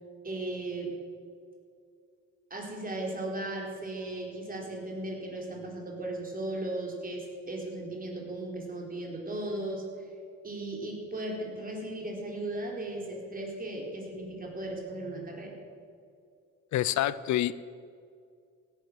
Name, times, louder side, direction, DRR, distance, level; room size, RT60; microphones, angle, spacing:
voice 1, 0.2-0.9 2.5-9.9 10.4-15.6, right 2 dB, 30° right, 0 dB, 4.0 m, -36 dB
voice 2, 16.7-17.5, left 13 dB, 70° left, 17 dB, 0.5 m, -27 dB
16.5 x 10.5 x 6.3 m, 2.3 s
cardioid pair, 90°, 30 cm